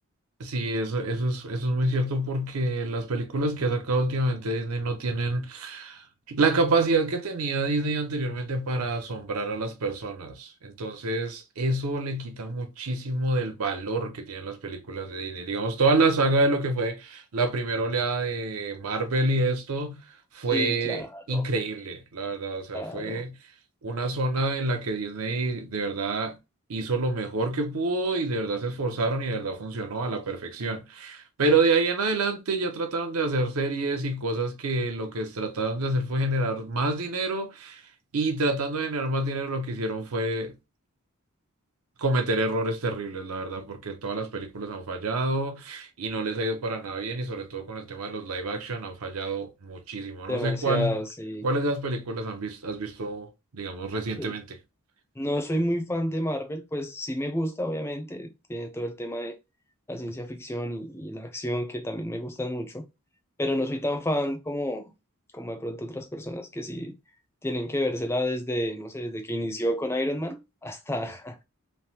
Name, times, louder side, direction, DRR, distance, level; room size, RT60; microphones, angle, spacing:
voice 1, 0.4-20.0 20.3-23.4 23.8-26.4 26.7-37.8 38.1-40.5 42.0-51.0 51.4-53.3 53.5-54.6, right 2 dB, 80° right, 0.6 m, -28 dB
voice 2, 20.5-21.5 22.7-23.2 50.3-51.5 54.2-54.3 55.2-59.4 59.9-62.8 63.4-64.9 65.3-66.9 67.4-71.4, equal, 10° left, 0.4 m, -30 dB
3.2 x 2.0 x 2.7 m
head